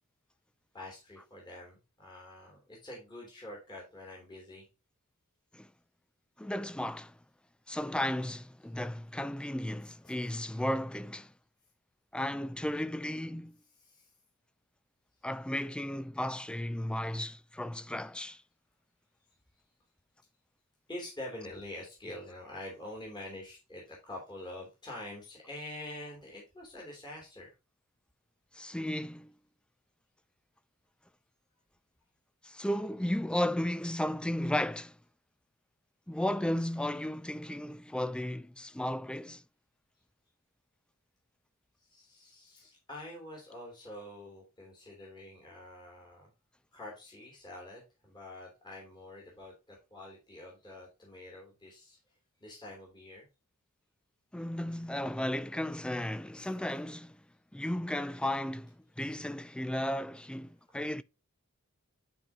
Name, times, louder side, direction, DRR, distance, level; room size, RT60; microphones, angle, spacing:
voice 1, 0.7-4.7 10.0-10.1 13.8-14.1 20.9-27.5 41.8-46.3 46.7-52.0 52.4-53.3 60.7-60.8, left 1 dB, 20° left, 3.0 m, -46 dB
voice 2, 6.4-7.2 7.7-11.3 12.1-13.6 15.2-18.4 28.5-29.3 32.4-35.0 36.1-39.4 54.3-57.2 57.5-61.0, left 1 dB, 5° left, 0.3 m, -34 dB
11.0 x 4.7 x 2.8 m
head